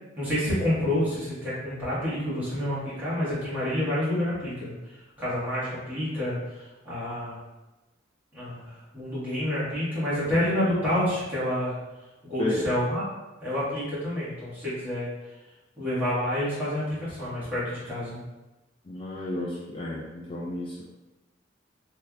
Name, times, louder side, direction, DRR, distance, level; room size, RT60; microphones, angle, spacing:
voice 1, 0.2-4.9 5.2-7.4 8.3-11.8 12.2-13.0 13.4-15.1 15.8-18.2, left 1 dB, 10° right, -11 dB, 1.5 m, -28 dB
voice 2, 18.9-20.8, left 1 dB, 25° left, -4 dB, 0.3 m, -32 dB
3.3 x 3.3 x 2.4 m, 1.1 s
head